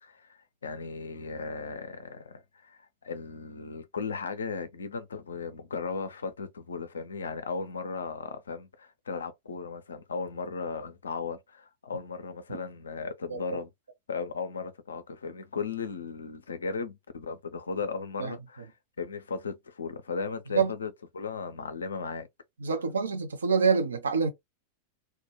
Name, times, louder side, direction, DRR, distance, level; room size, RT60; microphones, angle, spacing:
voice 1, 0.0-13.7 14.1-18.7 19.0-22.3, left 5 dB, 70° left, 0.4 m, -36 dB
voice 2, 22.6-24.3, right 5 dB, 70° right, 0.5 m, -26 dB
2.2 x 2.1 x 2.9 m
figure-of-eight pair, 90°, 0 cm